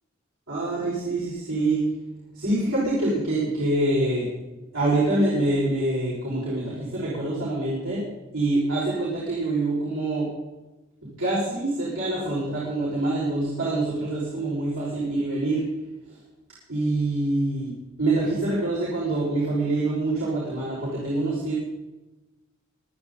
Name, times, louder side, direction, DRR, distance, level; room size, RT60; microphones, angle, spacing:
voice 1, 0.5-1.8 2.1-4.3 4.7-8.0 8.3-10.3 11.2-15.6 16.1-16.2 16.7-17.7 18.0-21.5, right 2 dB, 75° right, -7 dB, 6.0 m, -25 dB
25.0 x 9.5 x 4.1 m, 1.1 s
head